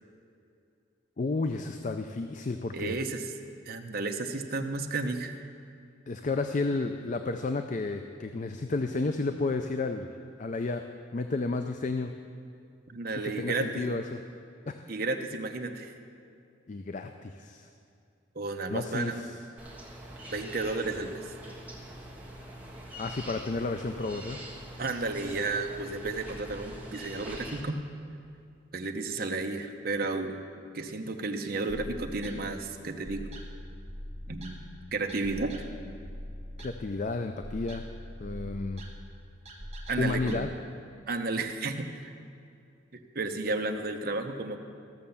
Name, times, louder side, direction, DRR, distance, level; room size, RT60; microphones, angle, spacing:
voice 1, 1.2-3.0 6.1-10.1 10.4-10.8 11.1-12.1 13.4-14.2 14.7-14.8 16.7-17.7 18.7-19.4 23.0-24.4 36.6-37.8 38.2-38.8 40.0-40.5, left 3 dB, 40° left, 7 dB, 0.4 m, -32 dB
voice 2, 2.7-3.3 3.6-5.3 12.9-14.0 14.9-16.0 18.3-19.2 20.3-21.3 24.8-27.8 28.7-30.4 30.7-33.3 34.3-34.6 34.9-35.5 39.9-40.4 41.1-42.1 43.1-44.6, right 3 dB, 50° right, 5 dB, 0.8 m, -32 dB
sound 1, 19.6-27.6, right 1 dB, 10° right, 1.4 m, -44 dB
sound 2, 31.7-40.4, equal, 35° right, 1.3 m, -43 dB
14.5 x 6.6 x 7.1 m, 2.5 s
head